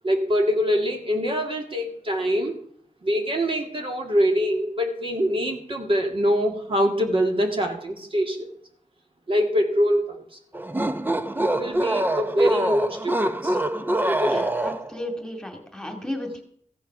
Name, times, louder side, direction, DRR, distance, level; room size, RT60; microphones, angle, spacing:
voice 1, 0.0-2.5 3.0-8.5 9.3-10.2 11.4-13.6 14.1-14.5, equal, 45° right, 2 dB, 2.1 m, -24 dB
sound 1, 10.5-15.0, right 1 dB, 15° right, 0.7 m, -25 dB
voice 2, 14.3-16.4, left 1 dB, 5° left, 4 dB, 2.3 m, -34 dB
15.0 x 8.5 x 5.9 m, 0.63 s
wide cardioid pair, 125°, 13 cm